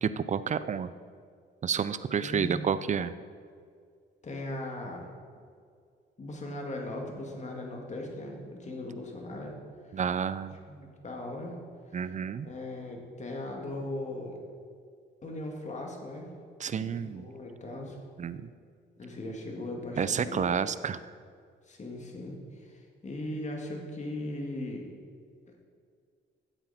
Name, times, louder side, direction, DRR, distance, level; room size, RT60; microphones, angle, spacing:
voice 1, 0.0-0.9 1.6-3.1 9.9-10.6 11.9-12.5 16.6-17.3 18.2-18.5 20.0-21.1, right 7 dB, 35° right, 14 dB, 0.5 m, -30 dB
voice 2, 2.2-2.6 4.2-5.1 6.2-9.5 9.9-10.0 10.7-11.6 12.4-14.4 15.2-16.3 16.8-18.0 19.0-20.5 21.7-24.9, left 1 dB, 35° left, 1 dB, 2.3 m, -38 dB
13.5 x 8.0 x 4.3 m, 2.2 s
cardioid pair, 90°, 20 cm